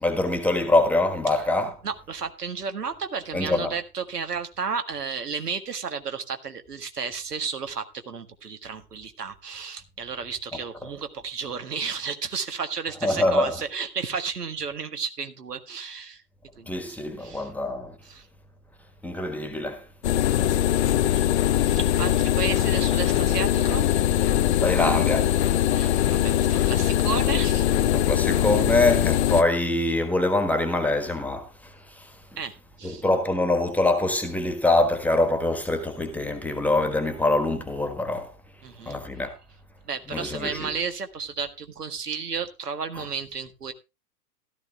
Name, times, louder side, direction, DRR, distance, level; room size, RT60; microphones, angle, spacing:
voice 1, 0.0-1.7 3.3-3.7 13.0-13.6 16.7-17.9 19.0-19.8 24.6-26.2 27.8-31.5 32.0-32.1 32.8-38.3 38.9-39.3 40.1-40.7, left 2 dB, 5° left, 1.4 m, -24 dB
voice 2, 1.8-16.2 16.6-17.5 18.0-18.2 21.1-21.3 21.6-24.0 25.7-27.7 32.4-33.0 38.6-39.0 39.9-43.7, right 5 dB, 75° right, 1.7 m, -33 dB
sound 1, 20.0-29.4, left 12 dB, 45° left, 0.8 m, -22 dB
16.0 x 12.5 x 2.4 m
figure-of-eight pair, 105°, 48 cm